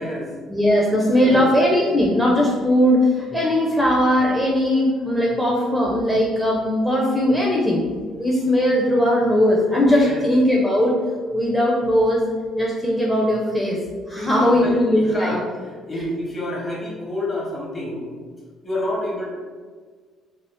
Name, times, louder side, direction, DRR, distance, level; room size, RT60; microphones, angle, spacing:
voice 1, 0.5-7.8 8.2-11.0 11.3-13.8 14.1-15.4 15.9-16.0, left 1 dB, ahead, -4 dB, 0.5 m, -19 dB
voice 2, 1.2-1.5 9.9-10.2 14.2-18.1 18.6-19.3, left 1 dB, 35° left, -4 dB, 1.2 m, -29 dB
2.5 x 2.0 x 3.4 m, 1.6 s
supercardioid pair, 65°, 0 cm